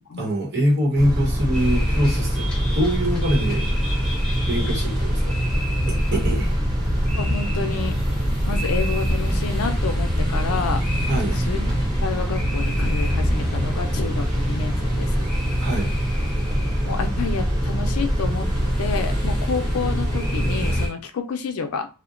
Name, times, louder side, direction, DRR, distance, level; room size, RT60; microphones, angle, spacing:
voice 1, 0.2-3.7 4.5-5.4 6.1-6.6 11.0-11.4 15.6-15.9, equal, 50° right, 0 dB, 0.9 m, -23 dB
Car / Idling / Accelerating revving vroom, 1.0-20.9, equal, 20° right, 0.3 m, -25 dB
sound 1, 1.5-20.9, equal, 5° left, 0.7 m, -27 dB
voice 2, 7.2-8.0 8.5-10.8 11.4-11.7 12.0-15.1 16.8-18.5 18.8-21.9, left 5 dB, 85° left, 6 dB, 0.4 m, -29 dB
2.8 x 2.1 x 2.4 m, 0.33 s
head